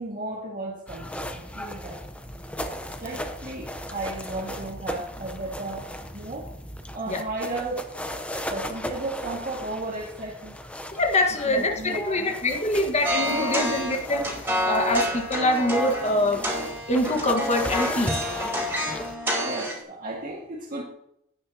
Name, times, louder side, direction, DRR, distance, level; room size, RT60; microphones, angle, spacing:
voice 1, 0.0-2.0 3.0-5.9 6.1-6.5 6.9-7.9 8.5-10.5 11.5-12.4 13.0-13.1 13.3-13.7 19.4-20.8, right 2 dB, 40° right, -4 dB, 2.0 m, -34 dB
sound 1, 0.9-19.1, equal, 5° left, 0.8 m, -37 dB
voice 2, 10.9-14.4 14.6-16.4 16.9-18.3, left 1 dB, 30° left, 4 dB, 1.6 m, -24 dB
sound 2, 13.0-19.8, equal, 10° right, 4.8 m, -28 dB
16.5 x 10.0 x 2.9 m, 0.76 s
head